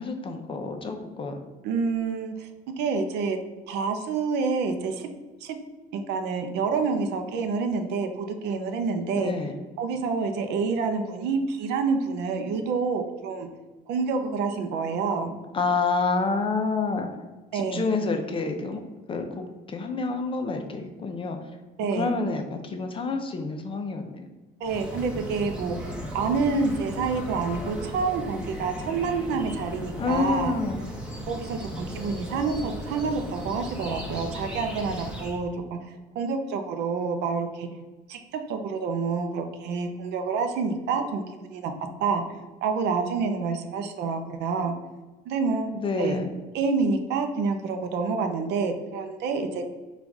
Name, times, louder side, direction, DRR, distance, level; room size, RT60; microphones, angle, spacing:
voice 1, 0.0-1.4 9.1-9.5 15.5-17.1 17.5-18.8 19.1-21.4 22.0-24.3 30.0-30.9 45.7-46.3, left 4 dB, 30° left, 5 dB, 0.6 m, -28 dB
voice 2, 1.6-2.5 2.8-3.4 3.7-5.1 5.4-5.6 5.9-9.3 9.8-13.5 13.9-15.4 17.5-17.8 21.8-22.1 24.6-30.5 31.2-37.7 38.1-41.7 42.0-42.2 42.6-44.8 45.3-45.7 46.0-46.2 46.5-49.6, right 4 dB, 85° right, 6 dB, 0.6 m, -28 dB
sound 1, 24.6-35.4, equal, 5° right, 0.9 m, -36 dB
4.0 x 2.4 x 4.6 m, 1.2 s
cardioid pair, 110°, 17 cm